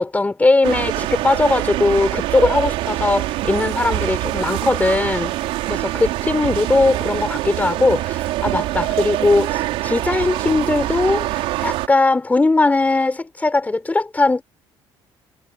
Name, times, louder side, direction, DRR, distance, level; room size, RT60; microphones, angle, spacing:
voice 1, 0.0-5.3 5.7-14.4, left 2 dB, 15° left, 5.1 m, -19 dB
sound 1, 0.6-11.9, right 16 dB, 85° right, 4.8 m, -24 dB
cardioid pair, 105°, 10 cm